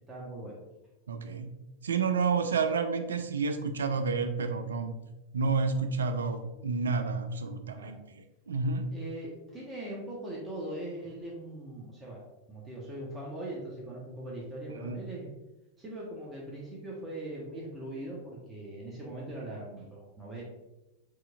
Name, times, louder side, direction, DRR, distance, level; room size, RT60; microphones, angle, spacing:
voice 1, 0.1-0.5 1.3-1.4 7.7-7.9 8.9-12.2 12.5-15.3 15.8-20.4, right 1 dB, 15° right, -4 dB, 1.0 m, -40 dB
voice 2, 1.1-1.5 1.8-5.0 5.3-8.9 14.8-15.0, right 4 dB, 70° right, 8 dB, 0.4 m, -30 dB
4.7 x 3.9 x 2.4 m, 0.99 s
figure-of-eight pair, 90°, 0 cm